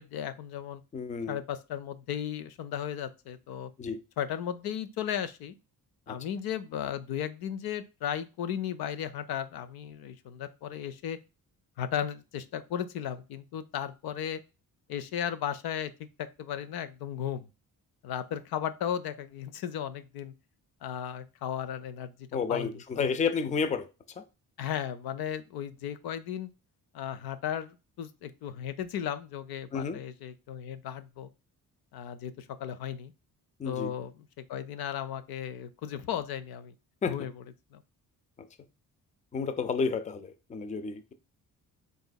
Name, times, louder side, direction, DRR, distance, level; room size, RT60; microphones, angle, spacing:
voice 1, 0.0-0.8 1.3-3.7 4.2-5.5 6.1-11.2 11.8-14.4 14.9-15.9 16.2-17.5 18.0-20.3 20.8-22.7 23.0-23.1 24.6-26.5 26.9-31.3 31.9-33.1 33.6-36.7 37.1-37.3 37.7-37.8, left 9 dB, 85° left, 0.6 m, -35 dB
voice 2, 0.9-1.4 3.8-4.0 6.1-6.2 22.3-23.9 24.2-24.3 29.7-30.0 33.6-33.9 37.0-37.1 39.3-41.1, left 5 dB, 20° left, 0.4 m, -31 dB
4.1 x 3.7 x 2.2 m
cardioid pair, 130°, 36 cm